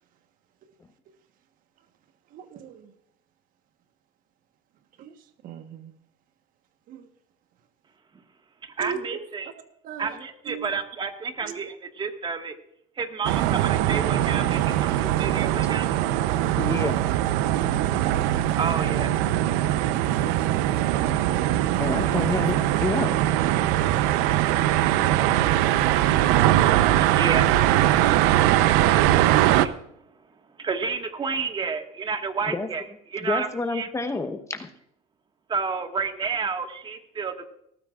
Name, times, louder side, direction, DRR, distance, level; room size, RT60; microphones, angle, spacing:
voice 1, 2.3-2.9 5.0-5.1 5.4-5.9 6.9-7.1 8.8-9.2 9.8-10.2 10.4-10.7 11.4-11.6, right 7 dB, 55° right, 8 dB, 1.3 m, -37 dB
voice 2, 8.8-9.5 10.0-12.5 13.0-15.9 18.5-19.1 27.2-27.5 30.6-32.8 33.1-33.5 33.7-33.9 35.5-37.5, right 5 dB, 30° right, 5 dB, 1.7 m, -30 dB
sound 1, 13.2-29.7, right 13 dB, 75° right, 0.7 m, -21 dB
voice 3, 16.6-17.0 21.8-23.2 32.5-32.7 33.2-34.7, left 3 dB, 15° left, 8 dB, 1.0 m, -28 dB
18.5 x 14.0 x 2.5 m, 0.73 s
supercardioid pair, 95°, 17 cm